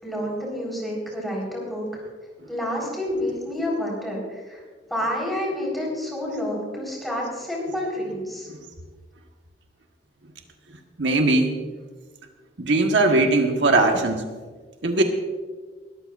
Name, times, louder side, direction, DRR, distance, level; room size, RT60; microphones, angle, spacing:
voice 1, 0.0-1.9 2.5-4.6 4.9-8.5, left 1 dB, ahead, -4 dB, 4.4 m, -29 dB
voice 2, 11.0-11.6 12.6-14.2 14.8-15.0, right 2 dB, 85° right, 3 dB, 1.4 m, -19 dB
21.5 x 13.5 x 2.6 m, 1.4 s
head